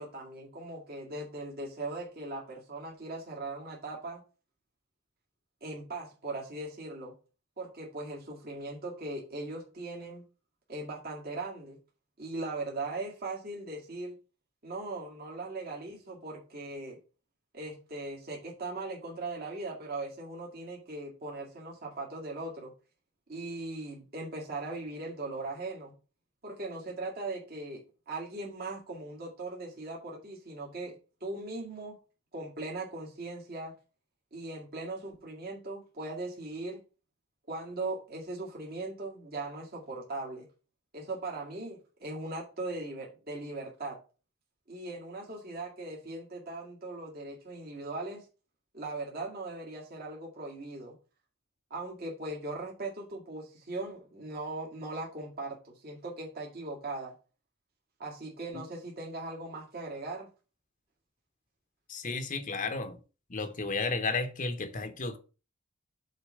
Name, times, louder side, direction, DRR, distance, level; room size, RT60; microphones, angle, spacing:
voice 1, 0.0-4.2 5.6-7.1 7.6-10.2 10.7-11.8 12.2-14.2 14.6-17.0 17.5-22.7 23.3-25.9 26.4-32.0 32.3-33.7 34.3-36.8 37.5-40.5 40.9-44.0 44.7-48.2 48.7-51.0 51.7-57.1 58.0-60.3, right 2 dB, 50° right, 2.0 m, -39 dB
voice 2, 61.9-63.0 63.3-65.2, left 3 dB, 40° left, 0.9 m, -33 dB
6.6 x 4.1 x 6.2 m
head